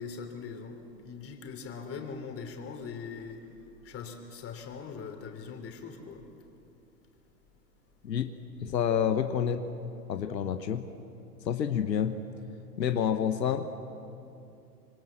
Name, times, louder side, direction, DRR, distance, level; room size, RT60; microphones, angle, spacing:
voice 1, 0.0-3.5 3.8-6.3, left 5 dB, 25° left, 4 dB, 3.3 m, -41 dB
voice 2, 8.6-9.6 10.1-10.9 11.4-12.2 12.8-13.7, left 8 dB, 80° left, 8 dB, 1.3 m, -28 dB
26.5 x 22.5 x 7.4 m, 2.7 s
hypercardioid pair, 110°, 49 cm